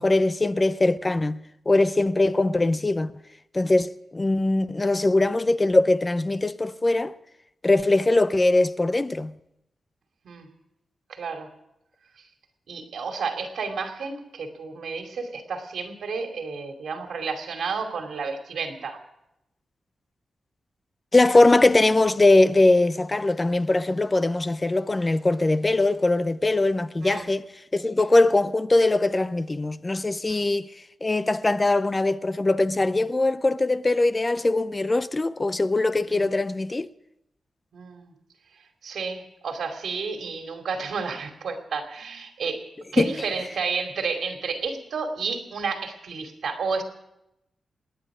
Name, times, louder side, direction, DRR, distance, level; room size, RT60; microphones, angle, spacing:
voice 1, 0.0-3.1 3.5-7.1 7.6-9.3 21.1-27.4 27.7-30.7 31.0-36.9 43.0-43.1, left 2 dB, 20° left, 0.5 m, -21 dB
voice 2, 11.1-11.5 12.2-12.3 12.7-19.0 27.0-27.2 30.3-30.4 36.1-36.3 37.7-38.1 38.5-46.8, right 5 dB, 80° right, 2.6 m, -31 dB
27.5 x 9.9 x 4.9 m
wide cardioid pair, 140°, 0 cm